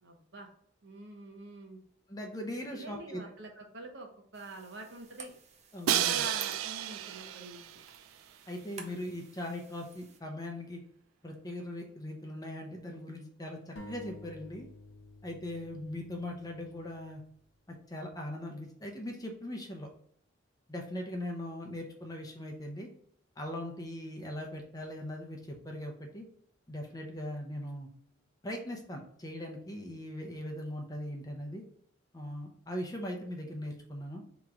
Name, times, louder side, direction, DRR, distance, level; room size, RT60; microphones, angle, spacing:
voice 1, 0.0-0.5 0.8-1.8 2.7-5.3 6.0-7.8, right 2 dB, 60° right, 2 dB, 0.9 m, -45 dB
voice 2, 2.1-3.2 5.7-6.3 8.5-10.8 11.2-14.7 15.2-17.2 17.7-19.9 20.7-22.9 23.4-26.2 26.7-27.9 28.4-31.6 32.1-34.2, left 1 dB, 20° left, 1 dB, 0.6 m, -40 dB
sound 1, 4.3-10.2, right 6 dB, 35° right, 0.5 m, -52 dB
Crash cymbal, 5.9-7.9, right 11 dB, 90° right, 0.3 m, -31 dB
sound 2, 13.8-17.4, left 1 dB, 65° left, 0.6 m, -51 dB
3.7 x 3.0 x 4.6 m, 0.63 s
head